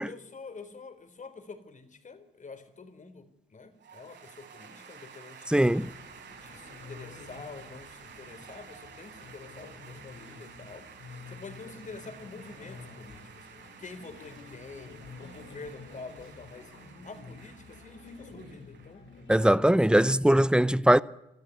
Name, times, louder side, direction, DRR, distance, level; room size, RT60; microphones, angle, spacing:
voice 1, 0.0-5.9 6.3-10.9 11.3-16.7 17.0-20.2, left 4 dB, 40° left, 4.0 m, -47 dB
sound 1, 3.8-19.3, right 7 dB, 65° right, 5.9 m, -51 dB
voice 2, 5.5-5.9 19.3-21.0, right 1 dB, 5° right, 0.7 m, -21 dB
sound 2, 5.7-19.7, left 4 dB, 85° left, 5.4 m, -49 dB
25.0 x 13.5 x 9.6 m
cardioid pair, 90°, 20 cm